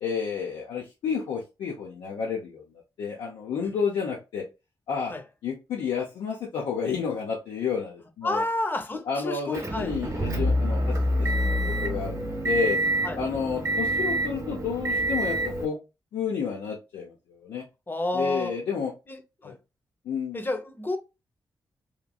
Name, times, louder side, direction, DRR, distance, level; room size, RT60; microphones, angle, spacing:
voice 1, 0.0-2.6 3.0-4.4 4.9-5.1 5.4-8.4 9.1-12.8 13.2-15.8 16.1-17.6 18.1-18.9 19.4-19.5 20.1-20.4, left 6 dB, 90° left, 0.6 m, -30 dB
voice 2, 8.2-10.0 13.0-13.2 17.9-18.6 19.1-19.5 20.3-21.0, left 1 dB, 25° left, 0.7 m, -30 dB
Motor vehicle (road) / Engine, 9.5-15.7, right 1 dB, 40° right, 0.9 m, -27 dB
3.0 x 2.4 x 2.2 m
cardioid pair, 60°, 8 cm